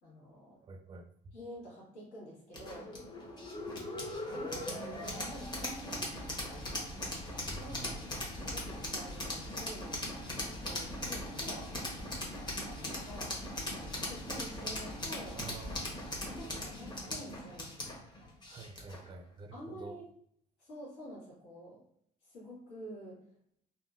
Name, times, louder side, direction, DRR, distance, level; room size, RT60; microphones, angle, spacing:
voice 1, 0.0-0.6 1.3-2.9 4.3-6.1 7.6-7.9 8.4-10.0 10.5-11.8 13.0-13.4 13.7-15.4 16.2-17.7 19.5-20.0 20.6-21.8 22.2-23.2, equal, 70° left, -6 dB, 1.4 m, -48 dB
voice 2, 0.6-1.3 7.4-8.0 15.3-15.9 18.5-20.0, right 4 dB, 25° right, 7 dB, 0.4 m, -48 dB
sound 1, 2.5-19.1, left 1 dB, 25° left, 0.9 m, -39 dB
3.5 x 2.1 x 2.4 m, 0.67 s
cardioid pair, 110°, 17 cm